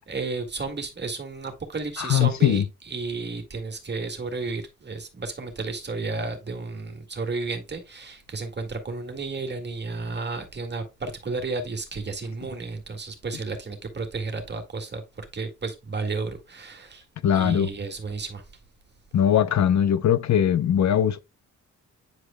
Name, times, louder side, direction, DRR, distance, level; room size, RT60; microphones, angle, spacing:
voice 1, 0.0-17.0 17.3-18.4, right 3 dB, 35° right, 2.0 m, -32 dB
voice 2, 2.0-2.6 17.2-17.7 19.1-21.2, left 9 dB, 60° left, 0.7 m, -20 dB
9.6 x 4.9 x 2.2 m
cardioid pair, 85°, 31 cm